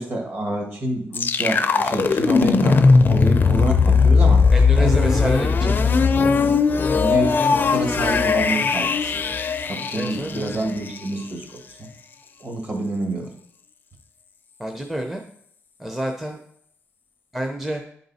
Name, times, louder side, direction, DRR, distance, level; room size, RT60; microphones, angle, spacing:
voice 1, 0.0-4.4 4.8-5.3 5.6-5.8 6.1-6.3 6.9-9.2 9.6-11.9 12.4-13.3, right 1 dB, 40° right, 2 dB, 1.7 m, -27 dB
sound 1, 1.1-11.0, left 5 dB, 40° left, 0.5 m, -18 dB
voice 2, 4.5-6.0 9.9-10.6 14.6-15.2 15.8-16.4 17.3-17.8, right 1 dB, 5° right, 2 dB, 0.6 m, -28 dB
10.0 x 3.9 x 4.1 m, 0.67 s
cardioid pair, 120°, 5 cm